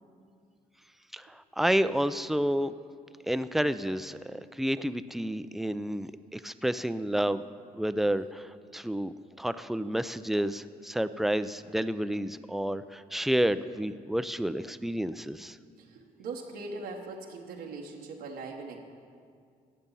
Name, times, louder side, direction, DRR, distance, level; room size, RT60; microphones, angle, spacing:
voice 1, 1.1-2.7 3.2-7.4 7.7-15.6, equal, ahead, 13 dB, 0.4 m, -30 dB
voice 2, 15.8-18.8, right 3 dB, 90° right, -1 dB, 1.1 m, -40 dB
16.5 x 6.8 x 5.6 m, 2.2 s
cardioid pair, 70°, 16 cm